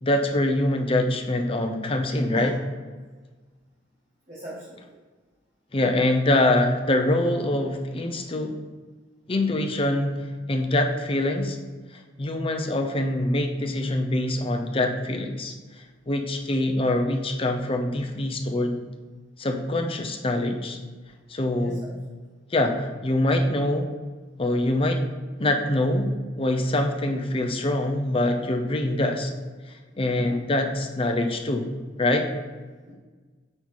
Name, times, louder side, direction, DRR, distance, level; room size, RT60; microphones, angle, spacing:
voice 1, 0.0-2.5 5.7-8.6 9.3-10.1 10.5-11.6 12.2-15.5 16.1-18.8 19.4-20.8 21.3-21.8 22.5-23.9 24.4-25.0 25.4-29.3 30.0-31.7 32.0-32.3, left 1 dB, 30° left, 4 dB, 0.6 m, -24 dB
voice 2, 4.3-5.0 21.5-21.9 29.9-30.4 32.8-32.9, equal, 40° right, -8 dB, 1.4 m, -40 dB
5.4 x 3.9 x 4.7 m, 1.4 s
head